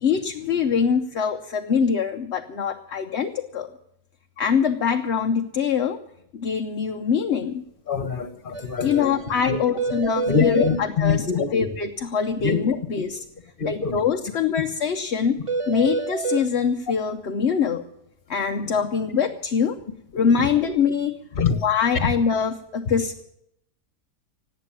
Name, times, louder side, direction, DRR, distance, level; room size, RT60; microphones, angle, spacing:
voice 1, 0.0-3.7 4.4-6.0 6.3-7.6 8.8-11.3 11.5-13.2 13.6-15.4 15.7-17.8 18.3-19.8 20.1-23.2, left 6 dB, 50° left, 4 dB, 0.9 m, -23 dB
voice 2, 7.9-9.1 9.4-9.6 10.2-11.5 12.4-12.6 13.6-14.0 20.4-20.5 21.4-21.5 22.0-22.1, left 5 dB, 35° left, 10 dB, 1.5 m, -24 dB
sound 1, 8.5-8.6 8.9-9.0 9.3-9.4 9.8-10.8 15.5-16.5, right 4 dB, 40° right, 0.4 m, -27 dB
18.5 x 8.5 x 8.8 m, 0.77 s
omnidirectional pair, 1.8 m